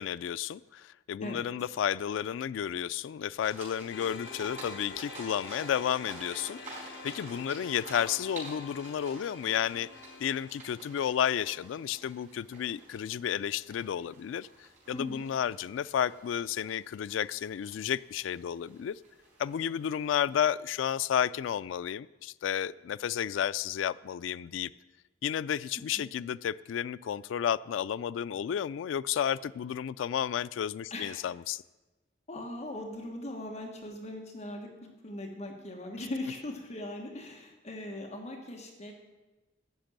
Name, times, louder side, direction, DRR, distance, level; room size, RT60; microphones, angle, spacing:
voice 1, 0.0-9.9 10.2-18.9 19.4-24.7 25.2-31.6, left 9 dB, 90° left, 18 dB, 0.3 m, -32 dB
sound 1, 3.4-20.5, right 2 dB, 40° right, 4.5 m, -50 dB
sound 2, 3.9-12.2, left 4 dB, 75° left, 1.3 m, -47 dB
voice 2, 30.9-31.2 32.3-38.9, left 1 dB, 35° left, 2 dB, 1.2 m, -40 dB
13.0 x 5.9 x 8.8 m, 1.1 s
head